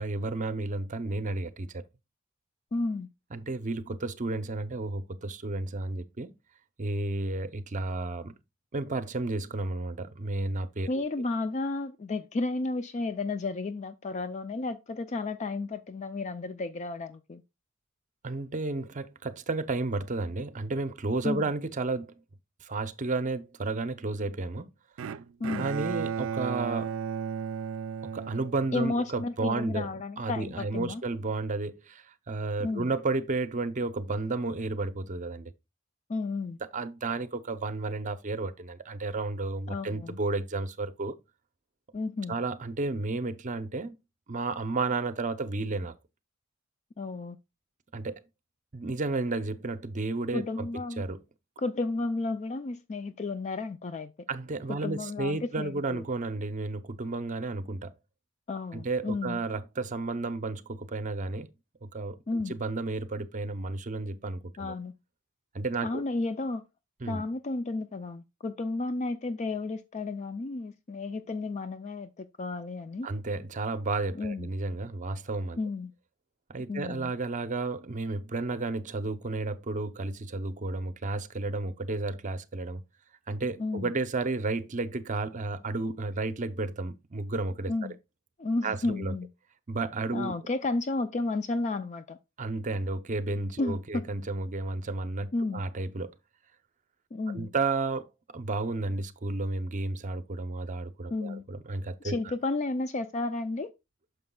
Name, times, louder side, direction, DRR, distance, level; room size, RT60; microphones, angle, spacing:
voice 1, 0.0-1.8 3.3-6.3 6.8-8.3 8.7-10.9 18.2-22.1 22.6-24.7 25.6-27.0 28.0-29.9 30.2-35.5 36.7-41.2 42.3-43.9 44.3-46.0 47.9-48.2 48.7-50.7 51.0-51.2 54.3-57.9 58.7-61.5 61.9-64.7 65.5-66.0 67.0-67.2 73.0-75.6 76.5-82.8 83.3-87.7 88.6-89.1 89.7-90.3 92.4-96.1 97.3-102.2, right 3 dB, 40° right, 0.7 m, -32 dB
voice 2, 2.7-3.1 10.9-17.4 21.2-21.4 25.4-25.7 28.7-31.0 32.6-32.9 36.1-36.6 39.7-40.2 41.9-42.4 47.0-47.4 50.3-51.0 51.6-54.1 54.7-56.0 58.5-59.4 62.3-62.6 64.6-64.9 65.8-66.6 67.1-73.1 74.1-74.5 75.6-75.9 76.7-77.1 83.6-83.9 87.7-88.0 88.4-89.3 90.1-92.2 93.6-94.0 95.3-95.6 97.1-97.5 101.1-101.4 102.0-103.7, left 3 dB, 35° left, 0.4 m, -32 dB
Bowed string instrument, 25.0-29.2, right 7 dB, 75° right, 0.4 m, -34 dB
9.5 x 6.7 x 2.3 m
head